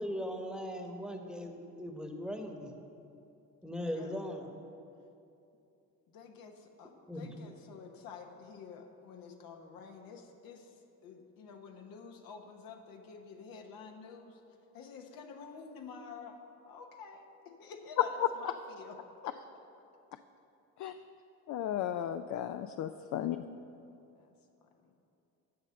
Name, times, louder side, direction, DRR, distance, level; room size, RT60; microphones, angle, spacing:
voice 1, 0.0-2.7 3.6-4.5 7.1-7.3, equal, ahead, 3 dB, 1.1 m, -39 dB
voice 2, 6.1-14.4 14.7-16.4 16.7-19.0 19.2-19.3 21.0-21.1 24.2-24.3 24.6-24.9, left 5 dB, 75° left, 4 dB, 1.1 m, -49 dB
voice 3, 21.5-23.4, left 11 dB, 55° left, 9 dB, 0.4 m, -33 dB
8.6 x 5.7 x 7.6 m, 2.7 s
supercardioid pair, 70°, 35 cm